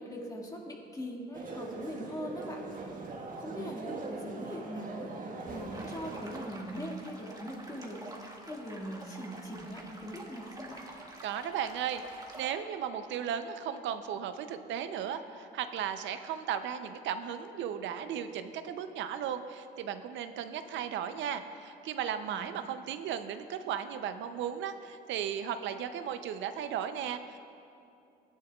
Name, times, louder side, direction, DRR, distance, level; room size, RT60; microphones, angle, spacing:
voice 1, 0.0-3.0 3.3-10.9 22.3-22.5, equal, 20° left, -1 dB, 2.0 m, -41 dB
sound 1, 1.3-6.5, right 3 dB, 45° right, 1.4 m, -41 dB
sound 2, 5.7-12.5, right 1 dB, 20° right, 1.6 m, -48 dB
voice 2, 11.2-27.4, right 8 dB, 80° right, 9 dB, 0.6 m, -36 dB
15.5 x 11.0 x 2.4 m, 2.5 s
cardioid pair, 80°, 19 cm